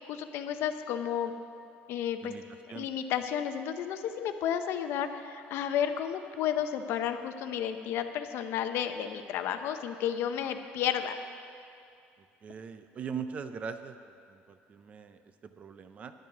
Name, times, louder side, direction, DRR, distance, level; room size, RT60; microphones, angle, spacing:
voice 1, 0.1-1.3 1.9-2.3 2.7-11.2, left 9 dB, 60° left, 8 dB, 0.6 m, -32 dB
voice 2, 12.4-14.0 14.3-16.1, right 6 dB, 30° right, 10 dB, 0.4 m, -41 dB
10.5 x 9.6 x 6.0 m, 2.5 s
cardioid pair, 170°, 5 cm